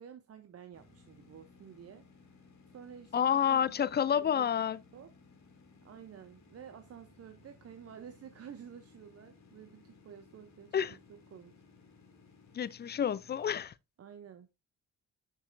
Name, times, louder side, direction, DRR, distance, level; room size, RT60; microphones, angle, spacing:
voice 1, 0.0-2.1 2.7-3.7 4.0-4.5 4.9-5.1 5.8-11.6 14.0-14.5, right 8 dB, 45° right, 0.6 m, -51 dB
sound 1, 0.7-13.6, left 4 dB, 50° left, 1.9 m, -60 dB
voice 2, 3.1-4.8 10.7-11.0 12.5-13.7, left 8 dB, 30° left, 0.4 m, -29 dB
6.5 x 5.9 x 2.5 m
supercardioid pair, 70°, 36 cm